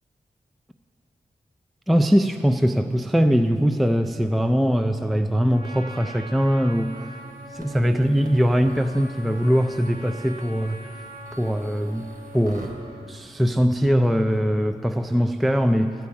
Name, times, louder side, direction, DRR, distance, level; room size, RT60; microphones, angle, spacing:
voice 1, 1.9-7.2 7.5-10.8 11.3-12.1 12.3-12.7 13.1-15.9, equal, ahead, 7 dB, 0.3 m, -21 dB
Trumpet, 5.5-13.1, right 2 dB, 40° right, 1.3 m, -42 dB
sound 1, 6.7-12.7, right 2 dB, 70° right, 1.4 m, -47 dB
12.5 x 4.6 x 8.6 m, 2.5 s
wide cardioid pair, 90°, 14 cm